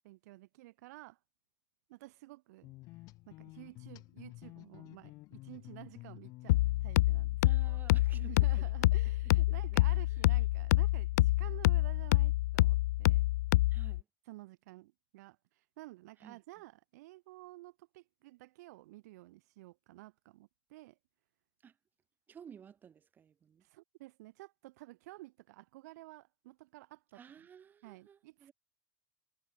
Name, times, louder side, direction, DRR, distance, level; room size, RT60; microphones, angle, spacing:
voice 1, 0.0-1.2 1.9-2.7 3.3-7.8 8.1-13.3 14.3-21.0 23.6-27.2 27.8-28.5, right 19 dB, 70° right, 4.3 m, -52 dB
sound 1, 2.6-7.8, left 20 dB, 40° left, 5.4 m, -52 dB
sound 2, 6.5-14.0, left 18 dB, 80° left, 0.5 m, -27 dB
voice 2, 7.4-8.7 9.7-9.8 10.1-10.2 13.7-14.1 16.2-16.4 21.6-21.8 22.3-23.6 27.1-28.5, right 8 dB, 20° right, 6.0 m, -55 dB
supercardioid pair, 160°, 9 cm